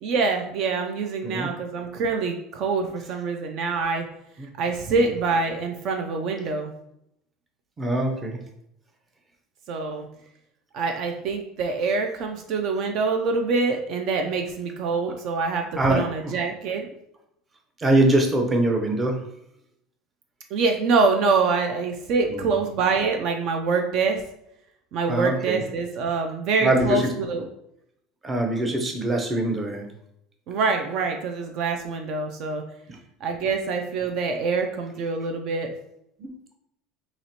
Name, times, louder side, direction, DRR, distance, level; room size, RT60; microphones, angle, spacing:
voice 1, 0.0-4.0 4.6-6.7 9.7-10.1 10.7-16.9 20.5-24.2 24.9-27.5 30.5-32.6 33.2-35.7, right 4 dB, 55° right, 4 dB, 0.4 m, -25 dB
voice 2, 7.8-8.4 15.8-16.0 17.8-19.2 22.3-22.5 25.1-25.6 26.6-27.1 28.2-29.9 32.9-33.0 36.2-36.3, right 1 dB, 20° right, 3 dB, 0.7 m, -23 dB
2.9 x 2.9 x 4.2 m, 0.78 s
cardioid pair, 140°, 0 cm